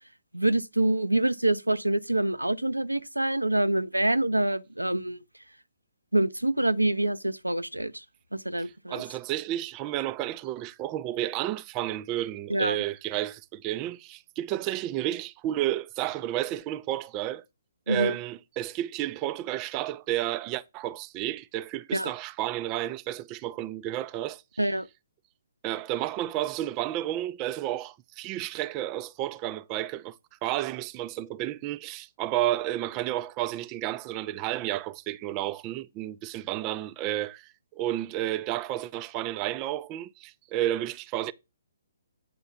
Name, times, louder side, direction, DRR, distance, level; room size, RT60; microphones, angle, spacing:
voice 1, 0.3-5.2 6.1-8.0 8.3-9.0 12.5-12.8 17.9-18.2 21.9-22.1 24.6-24.9, right 1 dB, 90° right, 0.6 m, -26 dB
voice 2, 8.6-17.4 17.9-24.4 25.6-30.1 30.4-37.5 37.8-41.3, right 13 dB, 25° right, 0.4 m, -31 dB
8.6 x 3.5 x 5.6 m
figure-of-eight pair, 130°, 0 cm